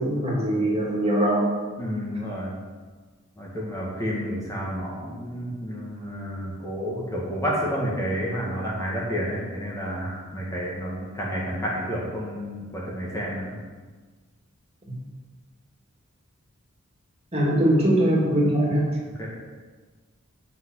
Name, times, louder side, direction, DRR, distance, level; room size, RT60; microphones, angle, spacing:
voice 1, 0.0-1.4 17.3-18.8, right 1 dB, 30° right, -3 dB, 2.5 m, -21 dB
voice 2, 1.8-2.5 3.4-13.6 19.2-19.3, equal, 15° left, -5 dB, 1.9 m, -30 dB
9.1 x 6.1 x 6.5 m, 1.4 s
head